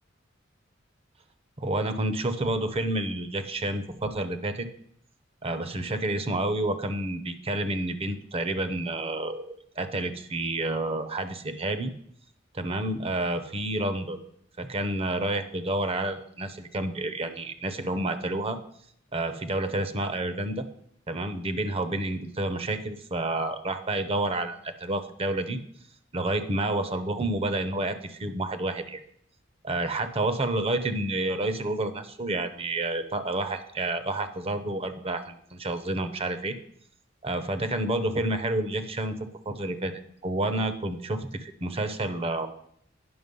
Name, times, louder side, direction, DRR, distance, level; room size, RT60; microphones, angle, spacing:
voice 1, 1.6-4.7 5.4-11.9 12.5-14.2 14.6-18.6 19.1-20.7 21.1-25.6 26.1-29.0 29.6-36.5 37.2-39.2 39.5-39.9 40.2-42.5, right 2 dB, 30° right, 10 dB, 0.7 m, -29 dB
9.6 x 5.9 x 5.3 m, 0.68 s
head